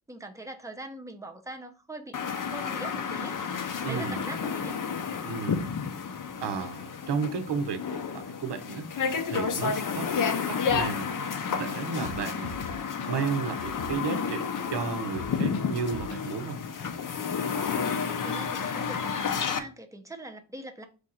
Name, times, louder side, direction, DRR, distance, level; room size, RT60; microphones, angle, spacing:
voice 1, 0.1-3.4 3.9-4.8 18.2-20.9, right 2 dB, 5° right, 0.6 m, -42 dB
sound 1, 2.1-19.6, left 6 dB, 45° left, 0.6 m, -31 dB
voice 2, 3.8-4.2 5.2-5.7 6.4-8.9 9.3-11.1 11.6-12.6 13.1-16.6, right 5 dB, 60° right, 0.8 m, -33 dB
sound 2, 10.7-11.1 11.5-11.6 11.9-14.7 15.0-16.2 16.5-16.6, left 4 dB, 85° left, 0.6 m, -41 dB
4.9 x 2.5 x 4.2 m
cardioid pair, 95°, 47 cm